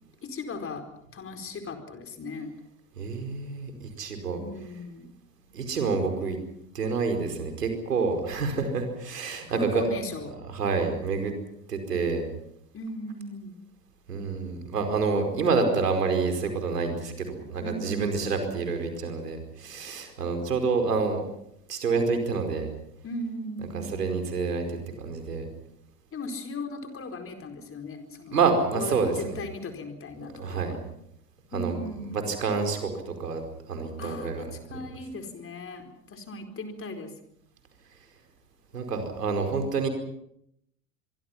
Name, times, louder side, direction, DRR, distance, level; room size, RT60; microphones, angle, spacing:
voice 1, 0.2-0.9 1.1-2.5 4.4-5.1 9.5-10.4 12.7-13.6 17.6-18.5 23.0-24.0 26.1-28.4 28.7-30.7 31.5-32.3 34.0-37.1, left 2 dB, 25° left, 6 dB, 4.5 m, -37 dB
voice 2, 3.0-4.4 5.5-6.4 6.7-9.8 10.5-11.3 11.7-12.2 14.1-21.2 21.7-22.7 23.7-25.5 28.3-29.4 30.2-30.8 31.5-31.8 32.0-33.4 33.7-34.4 38.7-39.9, right 4 dB, 80° right, 5 dB, 5.0 m, -28 dB
24.5 x 24.5 x 5.8 m, 0.75 s
figure-of-eight pair, 80°, 47 cm